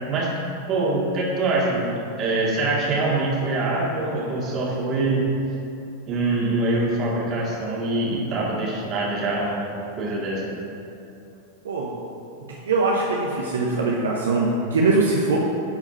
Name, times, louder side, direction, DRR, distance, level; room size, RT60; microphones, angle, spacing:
voice 1, 0.1-0.4 0.7-5.3 6.1-10.5, right 2 dB, 35° right, -4 dB, 2.2 m, -24 dB
voice 2, 12.5-15.4, right 3 dB, 65° right, -3 dB, 0.9 m, -22 dB
11.0 x 4.8 x 5.5 m, 2.8 s
figure-of-eight pair, 90°, 0 cm